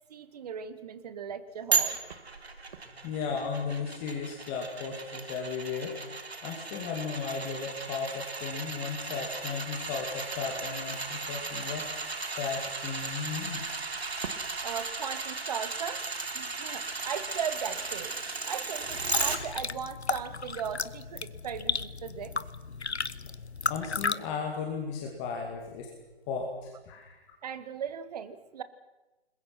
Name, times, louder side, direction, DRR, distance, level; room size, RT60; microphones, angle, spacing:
voice 1, 0.1-2.0 14.6-16.0 16.3-18.2 18.5-22.3 27.4-28.6, right 7 dB, 40° right, 12 dB, 1.7 m, -37 dB
sound 1, 1.7-19.4 19.8-19.9, right 4 dB, 70° right, 3.2 m, -35 dB
voice 2, 3.0-11.9 12.4-13.8 23.7-25.9 26.3-27.2, left 5 dB, 20° left, 0 dB, 2.5 m, -35 dB
sound 2, 18.8-24.2, left 4 dB, 85° left, 1.0 m, -34 dB
29.5 x 21.5 x 6.1 m, 1.1 s
figure-of-eight pair, 145°, 32 cm